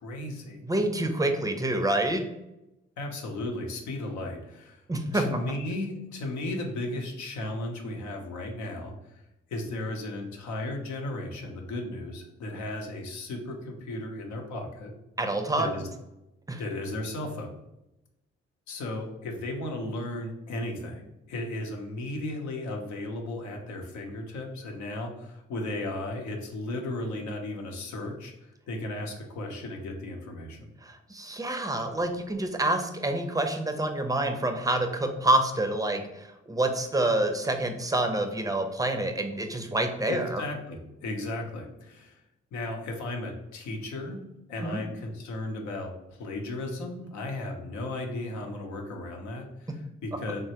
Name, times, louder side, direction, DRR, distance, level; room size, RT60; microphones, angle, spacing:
voice 1, 0.0-0.6 3.0-4.8 5.1-9.2 9.5-14.9 15.6-15.8 16.6-17.5 18.7-30.7 40.1-42.2 42.5-44.2 44.5-50.4, left 1 dB, 75° left, 2 dB, 0.7 m, -35 dB
voice 2, 0.6-2.2 4.9-5.4 15.2-15.7 16.5-16.6 30.8-40.4 44.6-44.8, right 1 dB, 10° right, 5 dB, 0.5 m, -27 dB
3.2 x 2.1 x 2.8 m, 0.90 s
supercardioid pair, 45°, 29 cm